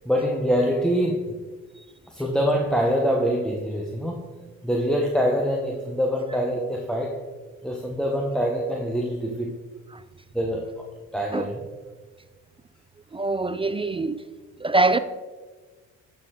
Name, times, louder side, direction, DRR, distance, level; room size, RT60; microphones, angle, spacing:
voice 1, 0.0-1.3 2.1-4.3 4.6-7.2 7.6-9.5 10.3-10.6 11.1-11.6, equal, ahead, 1.2 m, -24 dB
voice 2, 13.1-14.2 14.6-15.0, right 3 dB, 20° right, 0.4 m, -23 dB
11.0 x 6.9 x 3.8 m
cardioid pair, 90°, 30 cm